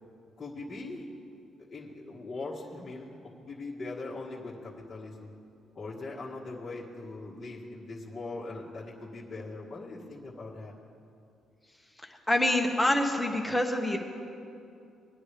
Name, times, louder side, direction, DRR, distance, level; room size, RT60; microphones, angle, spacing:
voice 1, 0.4-1.1 1.6-5.3 5.7-10.7, left 3 dB, 30° left, -7 dB, 1.6 m, -41 dB
voice 2, 12.0-14.0, left 1 dB, 5° left, 2 dB, 1.4 m, -26 dB
20.5 x 9.6 x 3.4 m, 2.6 s
cardioid pair, 90°, 0 cm